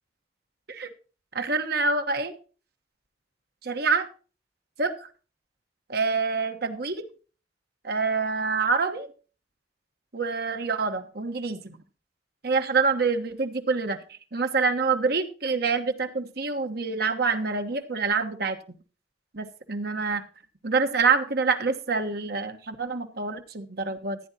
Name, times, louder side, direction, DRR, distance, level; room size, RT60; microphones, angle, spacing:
voice 1, 1.3-2.3 3.6-4.1 4.8-4.9 5.9-7.1 7.8-9.1 10.1-11.8 12.4-14.0 14.3-18.6 19.3-20.2 20.6-24.2, right 4 dB, 60° right, 7 dB, 1.3 m, -26 dB
15.0 x 9.6 x 2.9 m, 0.36 s
head